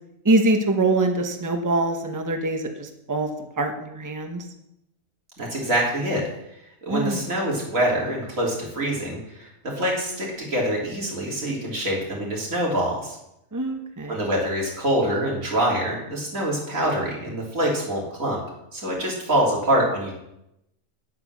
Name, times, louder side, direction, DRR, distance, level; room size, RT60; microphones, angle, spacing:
voice 1, 0.2-3.3 3.6-4.4 6.9-7.2 13.5-14.2, right 2 dB, 15° right, 4 dB, 1.0 m, -24 dB
voice 2, 5.4-6.2 6.8-13.2 14.1-18.4 18.7-20.1, right 1 dB, 85° right, -3 dB, 3.6 m, -25 dB
10.0 x 8.6 x 6.2 m, 0.84 s
omnidirectional pair, 1.4 m